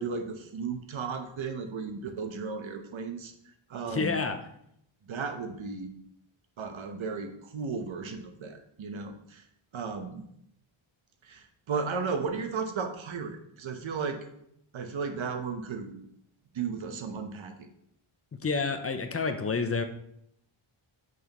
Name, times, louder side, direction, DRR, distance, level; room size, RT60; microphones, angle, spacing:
voice 1, 0.0-3.3 3.7-4.2 5.0-5.9 6.6-9.4 9.7-10.2 11.2-14.3 14.7-15.9 16.5-17.7, right 5 dB, 70° right, 6 dB, 1.1 m, -35 dB
voice 2, 3.9-4.4 18.4-19.8, left 4 dB, 30° left, 7 dB, 0.6 m, -29 dB
8.8 x 6.4 x 3.0 m, 0.74 s
wide cardioid pair, 150°, 49 cm